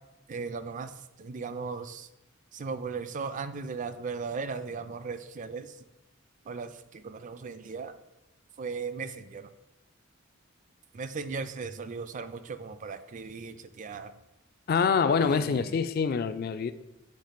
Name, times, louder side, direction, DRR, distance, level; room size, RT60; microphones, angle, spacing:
voice 1, 0.3-0.9 1.2-2.1 2.5-5.7 6.5-7.9 8.6-9.5 10.9-14.1 15.2-15.7, right 4 dB, 40° right, 0.4 m, -37 dB
voice 2, 14.7-16.7, left 6 dB, 50° left, 0.3 m, -25 dB
6.6 x 3.2 x 5.7 m
head